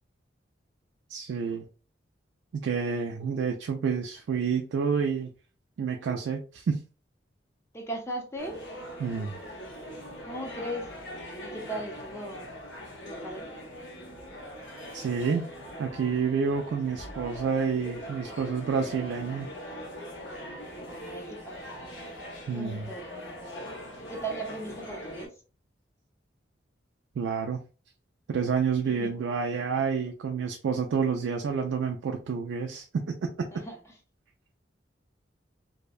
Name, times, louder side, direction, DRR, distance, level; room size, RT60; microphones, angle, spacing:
voice 1, 1.1-1.6 2.5-5.3 5.8-6.8 9.0-9.3 14.9-15.5 15.8-19.5 22.5-22.9 27.2-27.6 28.3-33.5, right 6 dB, 80° right, 0.3 m, -29 dB
voice 2, 7.7-8.6 10.3-10.9 11.4-12.6 13.0-13.5 21.0-21.9 22.5-23.6 24.0-25.3 28.8-29.2 33.5-33.8, right 1 dB, 15° left, 0.6 m, -38 dB
sound 1, 8.4-25.3, equal, 80° left, 0.9 m, -42 dB
2.6 x 2.1 x 2.3 m
head